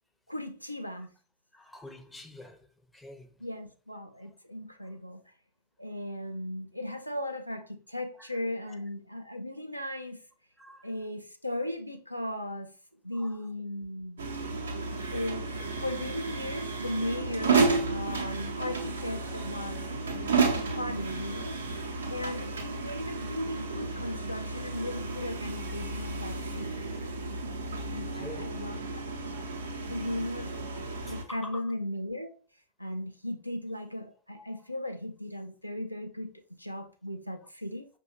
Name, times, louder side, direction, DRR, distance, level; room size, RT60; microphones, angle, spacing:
voice 1, 0.3-1.1 3.4-5.2 5.8-10.2 10.8-12.7 13.0-14.3 15.1-15.5 15.8-21.6 22.1-26.9 27.9-29.0 29.3-29.4 29.9-30.6 31.1-32.4 32.8-37.9, left 1 dB, 90° left, 0.4 m, -37 dB
voice 2, 1.5-2.7 2.9-3.4 8.7-8.8 10.6-10.9 13.1-13.4 26.9-27.0 28.1-28.5 29.3-29.7 30.8-31.6 34.3-34.4, left 1 dB, 5° left, 0.5 m, -47 dB
sound 1, 14.2-31.2, right 4 dB, 70° right, 0.6 m, -32 dB
5.4 x 2.2 x 2.9 m
figure-of-eight pair, 90°, 0 cm